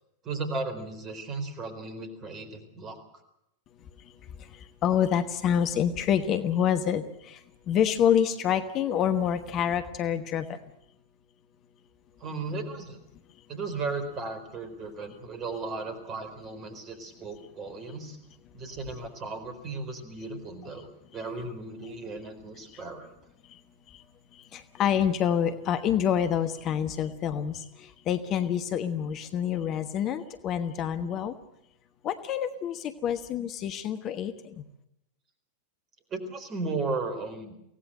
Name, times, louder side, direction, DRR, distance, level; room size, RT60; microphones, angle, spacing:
voice 1, 0.2-3.0 12.2-13.0 13.5-18.2 18.5-23.1 36.1-37.6, right 3 dB, 30° right, 9 dB, 4.2 m, -35 dB
voice 2, 3.8-10.6 22.7-22.8 23.4-23.6 23.9-24.0 24.3-31.4 32.0-34.6, left 9 dB, 35° left, 10 dB, 1.2 m, -28 dB
24.5 x 17.5 x 7.7 m, 0.80 s
figure-of-eight pair, 90°, 0 cm